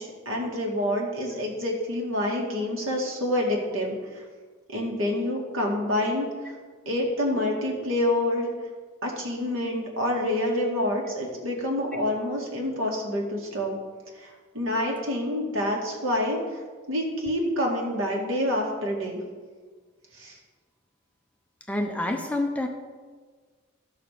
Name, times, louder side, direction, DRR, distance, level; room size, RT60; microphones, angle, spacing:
voice 1, 0.0-4.2 4.7-6.5 6.9-8.5 9.0-13.7 14.2-16.4 16.9-19.2 20.1-20.4, left 1 dB, 70° right, -1 dB, 2.2 m, -27 dB
voice 2, 21.7-22.7, left 1 dB, 5° left, 3 dB, 0.6 m, -27 dB
13.0 x 4.4 x 6.7 m, 1.5 s
head